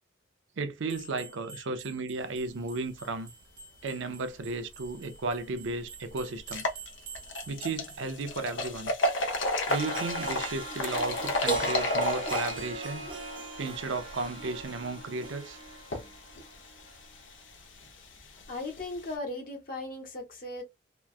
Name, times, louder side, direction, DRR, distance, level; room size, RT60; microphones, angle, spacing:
voice 1, 0.6-3.3 3.8-6.7 7.5-8.9 9.7-13.1 13.6-15.6, right 3 dB, 70° right, 0.5 m, -34 dB
sound 1, 0.8-8.1, right 5 dB, 50° right, 1.2 m, -49 dB
sound 2, 5.1-5.2 5.7-5.8 6.4-19.1, left 2 dB, 75° left, 0.8 m, -34 dB
Harp, 9.7-16.8, right 4 dB, 25° right, 0.5 m, -38 dB
voice 2, 18.5-20.6, left 2 dB, 45° left, 1.0 m, -37 dB
3.0 x 2.3 x 2.4 m
head